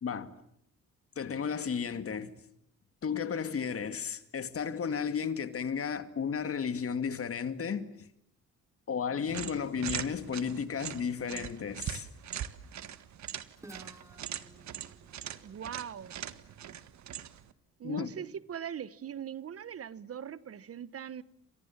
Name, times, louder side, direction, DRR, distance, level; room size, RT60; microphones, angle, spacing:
voice 1, 1.2-2.3 3.0-8.1 8.9-12.1 17.8-18.1, left 6 dB, 50° left, 2.4 m, -33 dB
sound 1, 9.3-17.5, right 10 dB, 65° right, 1.7 m, -41 dB
Guitar, 13.6-17.3, right 1 dB, 10° right, 2.2 m, -56 dB
voice 2, 15.4-16.1 17.8-21.2, right 9 dB, 50° right, 1.1 m, -41 dB
29.5 x 26.5 x 7.4 m
cardioid pair, 90°, 30 cm